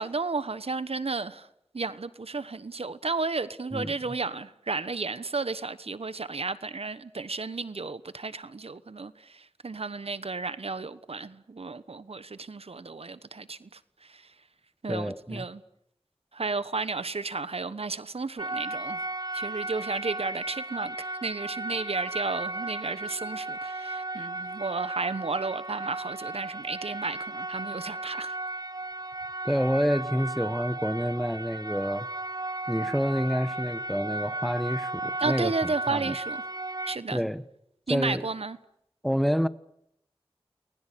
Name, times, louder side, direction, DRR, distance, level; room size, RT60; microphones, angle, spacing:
voice 1, 0.0-1.5 1.7-13.7 14.0-14.2 14.8-15.6 16.3-19.0 19.3-28.4 35.2-36.4 36.9-37.2 37.9-38.6, right 4 dB, 85° right, 1.2 m, -33 dB
voice 2, 14.9-15.4 29.4-32.1 32.7-36.1 37.1-37.4 37.9-38.3 39.0-39.5, equal, ahead, 1.2 m, -28 dB
sound 1, 18.4-37.0, right 2 dB, 40° right, 1.2 m, -35 dB
30.0 x 21.0 x 8.6 m
wide cardioid pair, 45°, 10 cm